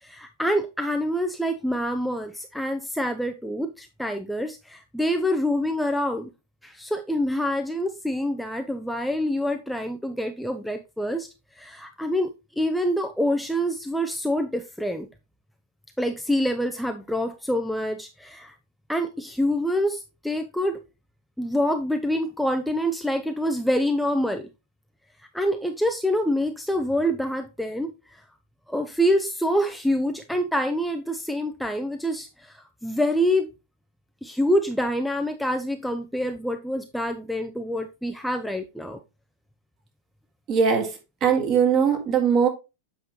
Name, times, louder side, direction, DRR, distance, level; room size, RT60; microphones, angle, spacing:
voice 1, 0.0-6.3 6.6-11.3 11.5-15.1 16.0-18.5 18.9-20.8 21.4-24.5 25.2-28.3 28.7-33.5 34.2-39.0, equal, ahead, 0.5 m, -26 dB
voice 2, 40.5-40.9 41.2-42.5, right 6 dB, 35° right, 1.9 m, -20 dB
7.7 x 5.3 x 3.1 m
figure-of-eight pair, 90°, 0 cm